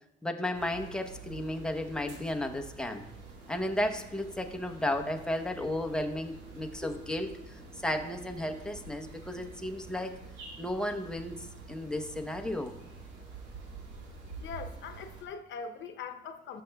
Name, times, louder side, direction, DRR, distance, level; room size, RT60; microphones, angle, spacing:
voice 1, 0.2-3.0 3.5-7.4 7.8-10.1 10.6-12.7, left 1 dB, 5° left, 3 dB, 0.9 m, -33 dB
sound 1, 0.5-15.2, right 4 dB, 85° right, 1.8 m, -48 dB
voice 2, 14.4-16.6, left 5 dB, 70° left, 6 dB, 0.8 m, -41 dB
13.0 x 6.5 x 2.3 m, 0.88 s
cardioid pair, 90°, 20 cm